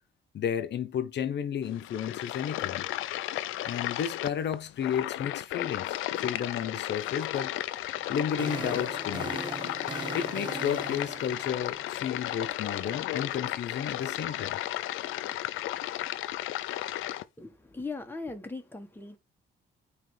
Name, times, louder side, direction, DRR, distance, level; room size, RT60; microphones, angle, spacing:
voice 1, 0.3-2.8 3.6-7.5 8.1-9.5 10.1-14.6, left 8 dB, 60° left, 1.0 m, -32 dB
sound 1, 1.6-17.2, left 14 dB, 90° left, 0.5 m, -34 dB
sound 2, 8.0-12.2, right 5 dB, 25° right, 0.4 m, -40 dB
voice 2, 17.4-19.2, left 3 dB, 10° left, 1.4 m, -39 dB
9.2 x 3.3 x 3.3 m
cardioid pair, 90°, 20 cm